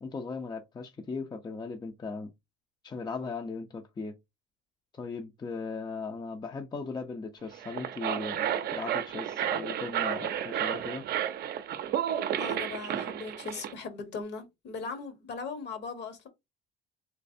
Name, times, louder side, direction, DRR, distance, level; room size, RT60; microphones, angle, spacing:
voice 1, 0.0-2.3 2.8-4.2 4.9-11.0, left 4 dB, 20° left, 0.5 m, -38 dB
sound 1, 7.5-13.7, right 10 dB, 50° right, 0.6 m, -32 dB
voice 2, 12.4-16.3, left 4 dB, 55° left, 1.2 m, -39 dB
3.2 x 3.2 x 2.6 m
cardioid pair, 100°, 21 cm